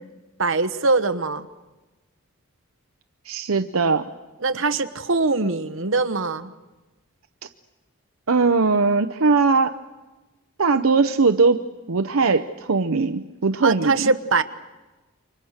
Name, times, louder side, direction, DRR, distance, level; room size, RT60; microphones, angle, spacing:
voice 1, 0.4-1.5 4.4-6.5 13.6-14.4, right 3 dB, 70° right, 9 dB, 1.2 m, -22 dB
voice 2, 3.3-4.1 8.3-9.7 10.6-11.6 11.9-14.1, right 4 dB, 85° right, 9 dB, 0.8 m, -20 dB
29.5 x 24.5 x 6.5 m, 1.1 s
head